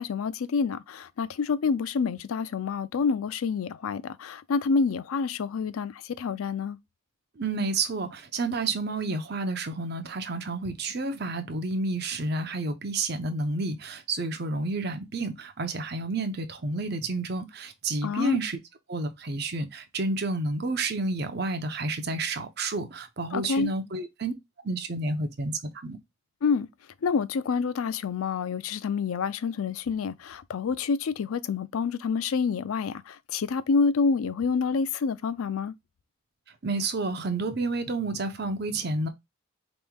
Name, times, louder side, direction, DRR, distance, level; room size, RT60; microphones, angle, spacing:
voice 1, 0.0-6.8 18.0-18.4 23.3-23.7 26.4-26.7 27.0-35.7, left 5 dB, 85° left, 0.4 m, -28 dB
voice 2, 7.4-18.6 18.9-24.3 24.6-26.0 36.6-39.1, right 3 dB, 50° right, 0.7 m, -30 dB
5.3 x 3.0 x 2.3 m
head